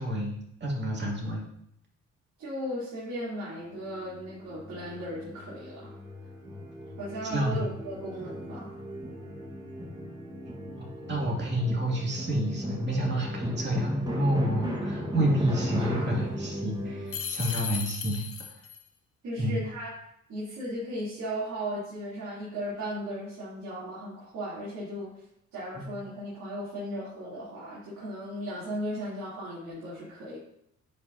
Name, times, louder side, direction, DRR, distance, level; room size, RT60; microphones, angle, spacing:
voice 1, 0.0-1.4 7.2-7.8 10.7-18.2 19.4-19.7 25.7-25.9, equal, 35° right, -2 dB, 2.3 m, -29 dB
voice 2, 2.4-5.9 7.0-8.7 19.2-19.9 20.3-25.2 25.5-30.4, equal, 70° right, -9 dB, 3.1 m, -36 dB
sound 1, 3.7-17.2, equal, 15° right, 1.5 m, -37 dB
sound 2, 17.1-18.8, left 7 dB, 50° left, 0.9 m, -35 dB
9.9 x 5.3 x 2.7 m, 0.76 s
cardioid pair, 90°, 30 cm